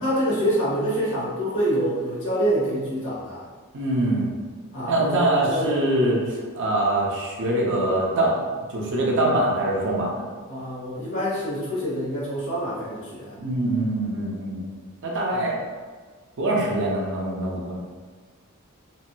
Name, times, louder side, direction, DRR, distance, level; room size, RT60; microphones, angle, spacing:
voice 1, 0.0-3.4 4.7-5.8 10.5-13.4 15.3-15.5, equal, 60° left, -8 dB, 1.4 m, -26 dB
voice 2, 3.7-4.4 4.8-10.2 13.4-14.7 15.0-15.6 16.4-17.8, right 1 dB, 55° right, -3 dB, 0.6 m, -24 dB
4.1 x 2.0 x 2.2 m, 1.5 s
head